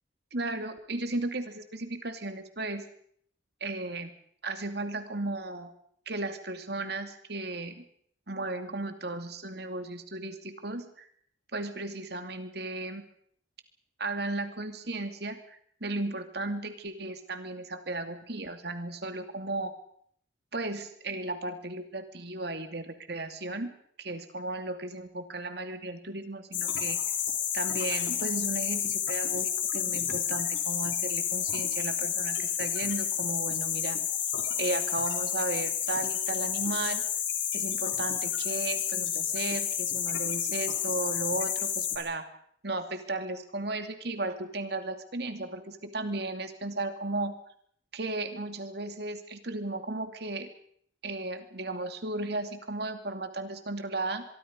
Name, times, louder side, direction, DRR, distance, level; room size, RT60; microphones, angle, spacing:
voice 1, 0.3-2.8 3.6-4.1 4.4-5.7 6.1-7.8 8.3-11.1 11.5-13.0 14.0-19.7 20.5-23.7 24.0-27.0 27.5-34.0 34.6-37.0 37.5-42.3 42.6-47.3 47.9-50.5 51.0-54.2, right 2 dB, 55° right, 7 dB, 2.6 m, -35 dB
sound 1, 26.5-42.0, left 9 dB, 75° left, 4.1 m, -30 dB
24.0 x 23.5 x 5.4 m, 0.64 s
head